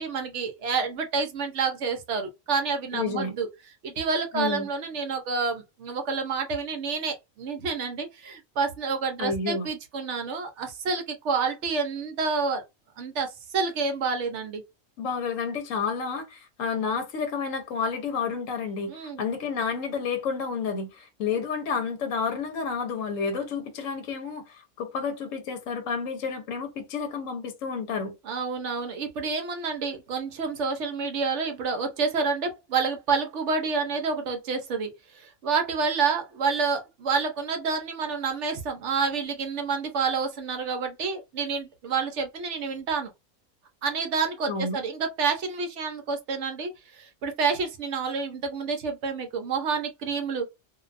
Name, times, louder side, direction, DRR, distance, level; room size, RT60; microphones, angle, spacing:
voice 1, 0.0-3.5 3.8-12.6 13.0-14.6 18.9-19.2 28.3-43.1 43.8-50.5, right 5 dB, 65° right, 0.9 m, -28 dB
voice 2, 2.9-3.3 4.3-4.7 9.2-9.7 15.0-28.1 44.5-44.8, left 5 dB, 75° left, 1.0 m, -30 dB
2.5 x 2.2 x 2.4 m
omnidirectional pair, 1.4 m